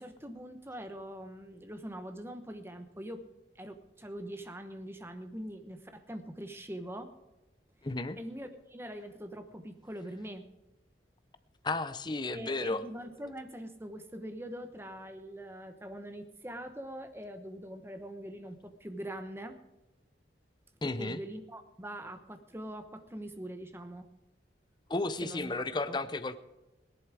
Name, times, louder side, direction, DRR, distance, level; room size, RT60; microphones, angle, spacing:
voice 1, 0.0-3.2 3.6-7.1 8.2-10.4 12.3-19.6 21.0-24.1 25.2-26.0, right 1 dB, 15° right, 7 dB, 1.0 m, -43 dB
voice 2, 7.8-8.2 11.6-12.8 20.8-21.2 24.9-26.4, left 2 dB, 25° left, 12 dB, 0.6 m, -33 dB
17.5 x 11.0 x 4.9 m, 1.1 s
head